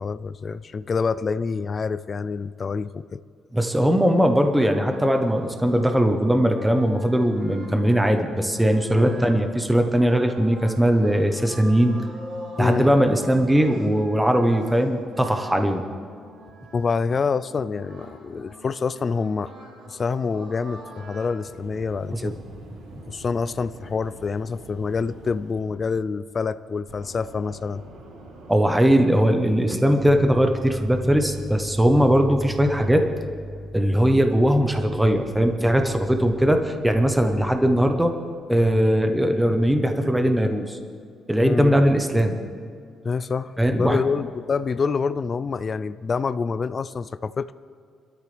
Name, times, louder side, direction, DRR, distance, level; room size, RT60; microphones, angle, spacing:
voice 1, 0.0-3.2 8.9-9.2 12.6-12.9 16.7-19.5 19.9-22.4 23.1-27.8 41.4-41.7 43.0-47.5, left 5 dB, 30° left, 14 dB, 0.3 m, -26 dB
voice 2, 3.5-12.0 12.6-15.8 22.1-22.3 28.5-33.0 33.7-38.1 38.5-40.8 41.3-42.4 43.6-44.0, equal, 5° right, 5 dB, 0.9 m, -20 dB
sound 1, 4.5-21.4, right 1 dB, 45° right, 3.3 m, -43 dB
sound 2, 21.4-31.4, right 2 dB, 85° right, 3.1 m, -46 dB
25.0 x 13.0 x 3.4 m, 2.3 s
cardioid pair, 155°, 0 cm